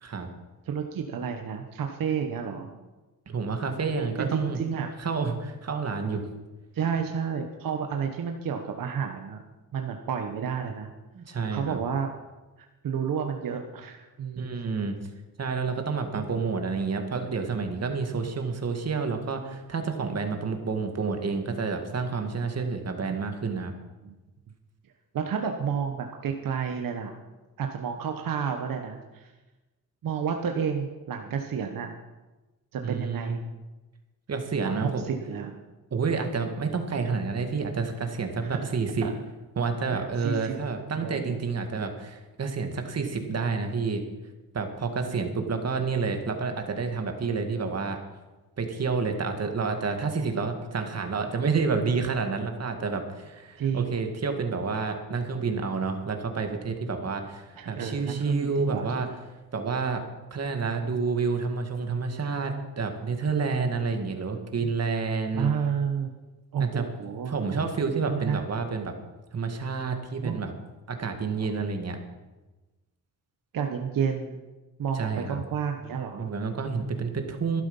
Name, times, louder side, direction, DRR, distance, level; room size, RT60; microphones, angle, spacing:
voice 1, 0.7-2.7 4.2-4.9 6.7-9.4 9.7-10.9 11.5-12.1 12.8-14.5 24.0-24.1 25.1-27.1 27.6-29.3 30.0-31.9 32.7-33.4 34.6-35.6 38.4-38.6 39.0-39.1 40.2-40.6 41.0-41.4 45.1-45.2 53.6-54.0 57.6-58.9 65.3-66.1 66.5-67.3 68.1-68.4 70.2-70.4 73.5-74.4 74.8-76.3, right 7 dB, 70° right, 4 dB, 1.2 m, -30 dB
voice 2, 3.3-4.6 5.0-6.2 11.1-11.8 14.4-15.0 15.4-23.7 32.8-33.4 34.3-35.0 35.9-39.1 39.6-44.0 44.5-48.0 48.6-59.1 59.5-60.0 60.3-65.5 66.6-66.8 67.3-68.9 69.3-70.5 70.9-72.0 74.9-75.4 76.2-77.6, right 4 dB, 45° right, 5 dB, 2.0 m, -29 dB
13.0 x 11.5 x 5.5 m, 1.1 s
cardioid pair, 95°, 35 cm